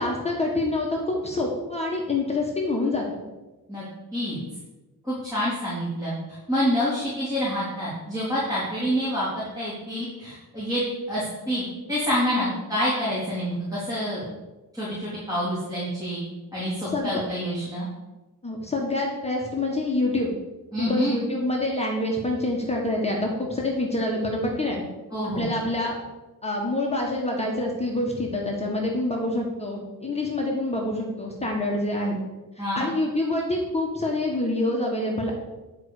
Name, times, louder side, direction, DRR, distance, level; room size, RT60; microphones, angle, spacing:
voice 1, 0.0-3.2 12.4-12.5 16.9-17.2 18.4-20.3 20.7-24.8 25.3-26.0 26.4-32.2 32.7-35.3, left 2 dB, 15° left, -2 dB, 1.5 m, -26 dB
voice 2, 5.0-10.8 11.1-14.2 14.7-16.2 16.5-17.9 20.7-21.2 25.1-25.5 32.6-32.9, equal, 10° right, -9 dB, 3.6 m, -27 dB
10.5 x 4.8 x 6.6 m, 1.1 s
wide cardioid pair, 135°, 37 cm